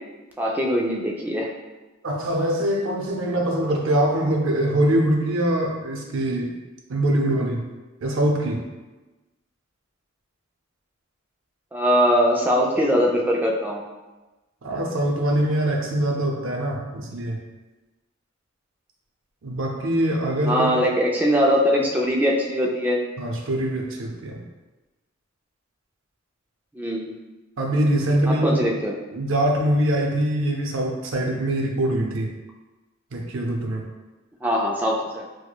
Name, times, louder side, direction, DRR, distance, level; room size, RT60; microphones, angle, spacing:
voice 1, 0.4-1.5 11.7-13.8 20.5-23.0 26.7-27.1 28.3-28.9 34.4-35.2, equal, 10° right, -2 dB, 0.3 m, -21 dB
voice 2, 2.0-6.5 6.9-7.6 8.0-8.6 14.6-17.4 19.4-20.8 23.2-24.4 27.6-28.6 29.1-32.3 33.1-33.8, right 1 dB, 70° right, 0 dB, 0.6 m, -23 dB
4.7 x 2.1 x 2.2 m, 1.1 s
head